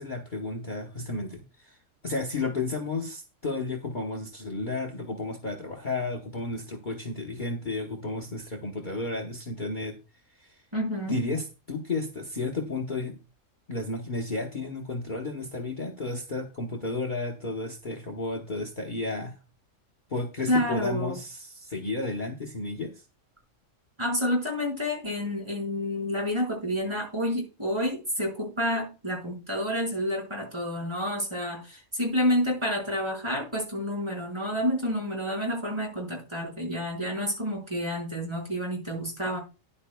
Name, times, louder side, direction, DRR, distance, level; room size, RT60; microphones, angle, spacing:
voice 1, 0.0-1.8 2.0-10.0 10.4-10.6 11.1-13.2 13.7-19.3 20.1-23.0, left 3 dB, 40° left, 5 dB, 1.2 m, -32 dB
voice 2, 10.7-11.2 20.5-21.2 24.0-39.4, equal, 20° right, 0 dB, 4.7 m, -29 dB
13.0 x 10.5 x 2.2 m, 0.30 s
omnidirectional pair, 1.3 m